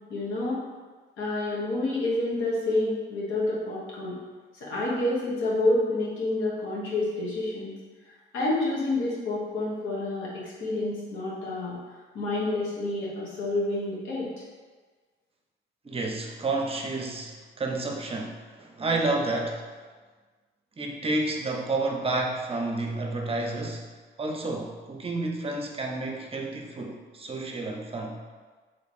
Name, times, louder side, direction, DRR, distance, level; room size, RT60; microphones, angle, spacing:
voice 1, 0.1-0.6 1.2-4.2 4.5-7.7 8.3-11.8 12.1-14.3, left 2 dB, 85° left, -6 dB, 1.3 m, -28 dB
voice 2, 15.8-19.6 20.8-23.9 24.2-28.2, right 2 dB, 30° right, 1 dB, 0.6 m, -30 dB
3.2 x 3.1 x 4.2 m, 1.4 s
cardioid pair, 90°, 20 cm